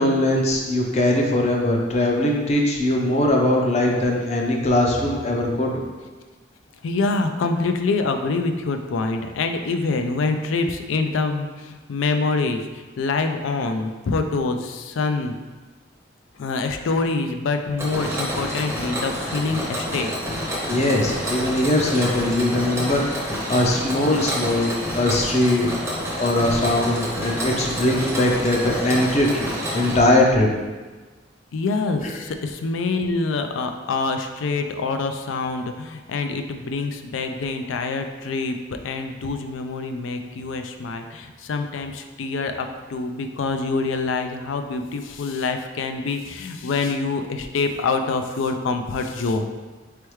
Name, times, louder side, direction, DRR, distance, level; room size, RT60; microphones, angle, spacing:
voice 1, 0.0-5.8 20.6-25.7 26.2-29.5 29.7-30.5 32.0-32.1, left 1 dB, 35° left, 0 dB, 0.5 m, -21 dB
voice 2, 6.8-15.4 16.4-20.1 31.5-49.5, left 3 dB, 85° left, 6 dB, 0.4 m, -25 dB
Mechanisms, 17.8-30.0, equal, 15° right, 0.6 m, -28 dB
4.4 x 3.4 x 3.1 m, 1.3 s
head